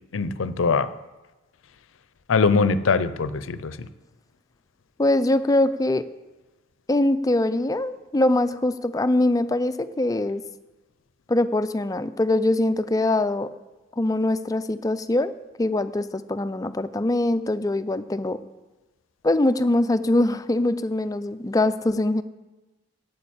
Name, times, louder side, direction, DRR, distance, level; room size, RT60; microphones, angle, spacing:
voice 1, 0.1-0.9 2.3-3.9, left 4 dB, 90° left, 14 dB, 0.5 m, -22 dB
voice 2, 5.0-6.1 6.9-10.4 11.3-13.5 14.0-15.3 15.6-18.4 19.2-22.2, left 1 dB, 20° left, 13 dB, 0.4 m, -23 dB
8.7 x 7.8 x 8.5 m, 1.1 s
head